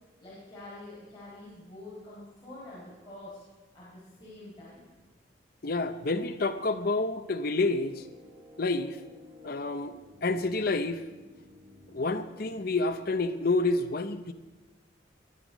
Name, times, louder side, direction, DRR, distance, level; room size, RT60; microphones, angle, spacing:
voice 1, 0.2-3.4 3.7-4.9, left 2 dB, 25° left, -9 dB, 4.9 m, -46 dB
voice 2, 5.6-8.0 8.6-9.0 9.4-9.9 10.2-11.0 11.9-14.3, left 3 dB, 50° left, 7 dB, 0.7 m, -28 dB
sound 1, 7.5-13.3, equal, 25° right, 2.8 m, -53 dB
20.0 x 11.0 x 5.1 m, 1.2 s
head